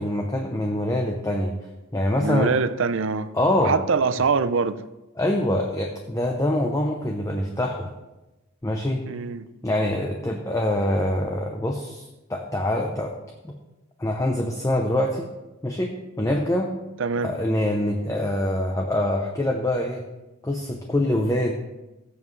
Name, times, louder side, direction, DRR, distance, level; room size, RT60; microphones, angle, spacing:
voice 1, 0.0-1.5 1.9-2.5 3.3-3.8 5.2-7.9 8.6-9.0 9.6-13.1 13.4-13.5 14.0-15.3 15.6-16.7 17.2-20.0 20.4-21.5, left 1 dB, 15° left, 0.6 m, -24 dB
voice 2, 2.2-3.3 3.6-4.8 9.1-9.5 17.0-17.3, right 5 dB, 65° right, 0.5 m, -23 dB
16.0 x 7.3 x 3.2 m
head